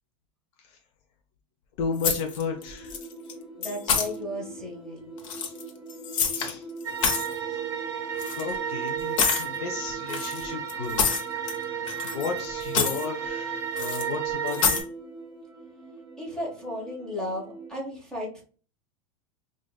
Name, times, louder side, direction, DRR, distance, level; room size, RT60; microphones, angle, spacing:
voice 1, 1.8-2.9 6.3-6.7 7.5-7.6 8.4-11.1 11.6-11.9 12.1-14.8, left 6 dB, 45° left, 2 dB, 0.6 m, -34 dB
sound 1, 1.8-17.7, right 2 dB, 20° left, 1.3 m, -43 dB
sound 2, 2.0-2.6 2.9-3.3 3.6-4.1 5.2-6.5 6.8-7.3 8.2-8.4 9.2-9.5 10.1-11.6 11.9-12.4 12.6-13.1 13.8-14.0 14.5-14.8, left 6 dB, 65° left, 0.9 m, -27 dB
voice 2, 3.6-5.1 16.2-18.4, left 1 dB, 5° left, -2 dB, 0.9 m, -34 dB
sound 3, 6.8-14.8, right 8 dB, 20° right, 0.5 m, -33 dB
4.9 x 2.5 x 2.3 m, 0.39 s
supercardioid pair, 165°, 18 cm